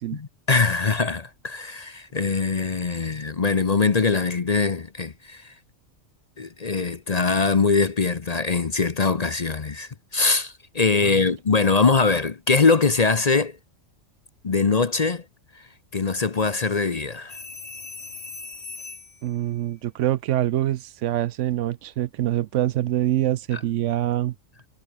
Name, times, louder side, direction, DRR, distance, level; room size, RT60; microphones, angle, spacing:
voice 1, 0.1-5.5 6.4-13.6 14.4-15.2 15.9-17.4 23.5-23.6, left 4 dB, 35° left, 0.8 m, -22 dB
sound 1, 17.3-19.3 21.7-21.9, left 4 dB, 55° left, 2.8 m, -39 dB
voice 2, 19.2-24.3, right 13 dB, 75° right, 0.9 m, -25 dB
omnidirectional pair, 1.3 m